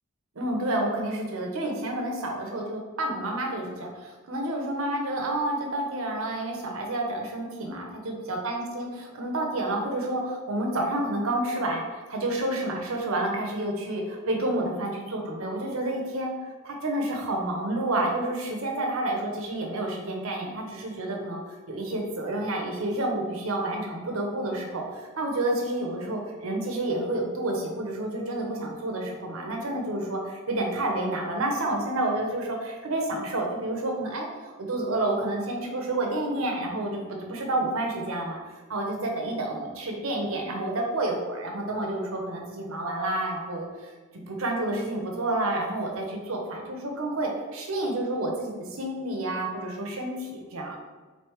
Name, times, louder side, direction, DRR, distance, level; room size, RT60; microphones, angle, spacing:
voice 1, 0.3-21.4 21.7-50.8, right 1 dB, 75° right, 1 dB, 0.8 m, -29 dB
3.9 x 3.3 x 3.1 m, 1.4 s
head